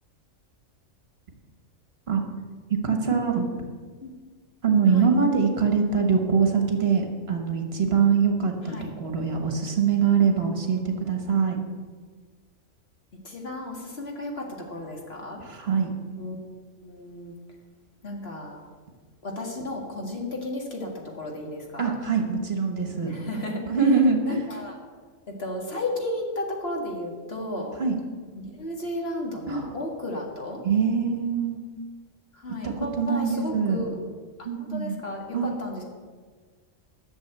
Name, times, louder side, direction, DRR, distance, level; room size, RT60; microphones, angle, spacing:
voice 1, 2.8-3.5 4.6-11.6 15.4-15.9 21.8-23.1 23.7-24.4 27.8-27.9 29.5-29.7 30.6-31.6 32.6-33.8 34.4-35.0 35.3-35.5, right 5 dB, 50° right, 4 dB, 1.5 m, -23 dB
voice 2, 13.2-15.4 16.2-16.5 16.8-17.3 18.0-18.6 19.2-20.9 21.2-22.0 23.1-23.6 24.2-24.8 25.4-27.7 28.4-30.6 32.3-34.0 34.6-35.2 35.6-35.8, left 1 dB, 50° left, 0 dB, 2.1 m, -33 dB
11.5 x 6.8 x 8.0 m, 1.5 s
omnidirectional pair, 1.3 m